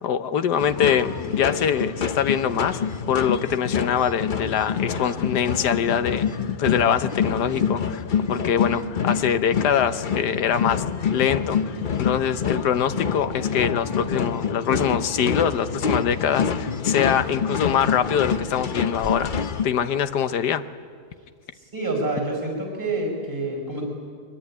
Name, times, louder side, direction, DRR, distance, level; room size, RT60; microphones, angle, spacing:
voice 1, 0.0-2.8 3.1-8.0 8.3-10.8 11.1-19.3 19.6-20.7, left 8 dB, 85° left, 11 dB, 1.5 m, -23 dB
sound 1, 0.6-19.7, left 6 dB, 45° left, 0.7 m, -27 dB
voice 2, 21.5-23.8, right 2 dB, 30° right, 1 dB, 5.5 m, -27 dB
23.0 x 22.5 x 9.9 m, 2.1 s
omnidirectional pair, 1.7 m